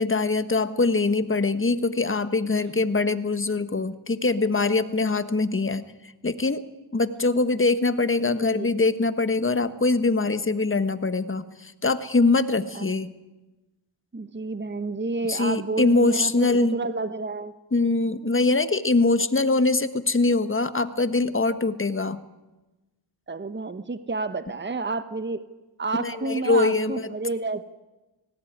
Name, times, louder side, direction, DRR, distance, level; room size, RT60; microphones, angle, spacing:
voice 1, 0.0-5.9 6.2-6.6 6.9-13.1 15.3-16.8 17.7-22.2 26.0-27.1, left 3 dB, 25° left, 12 dB, 1.5 m, -23 dB
voice 2, 8.3-8.7 12.7-12.9 14.1-17.5 23.3-25.4 25.8-27.7, right 3 dB, 25° right, 12 dB, 1.2 m, -30 dB
18.5 x 17.0 x 9.6 m, 1.1 s
cardioid pair, 55°, 47 cm